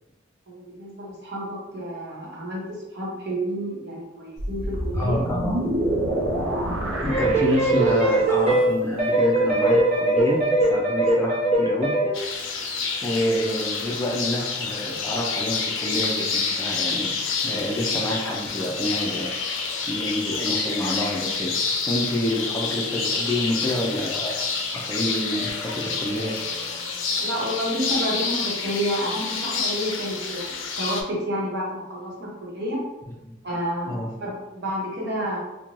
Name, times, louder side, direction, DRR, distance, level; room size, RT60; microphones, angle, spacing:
voice 1, 0.5-5.2 27.2-32.8 33.4-35.4, equal, 60° right, -4 dB, 0.9 m, -30 dB
sound 1, 4.4-8.3, right 1 dB, 80° right, 0.6 m, -27 dB
voice 2, 4.9-5.6 7.0-11.9 13.0-17.2 17.4-19.3 19.9-21.5 21.9-24.5 24.9-26.3 33.9-34.1, left 1 dB, 15° left, -2 dB, 0.4 m, -28 dB
sound 2, 7.1-12.1, right 1 dB, 35° right, 0.8 m, -21 dB
sound 3, 12.1-31.0, left 4 dB, 80° left, 0.4 m, -28 dB
2.6 x 2.1 x 3.0 m, 1.0 s
head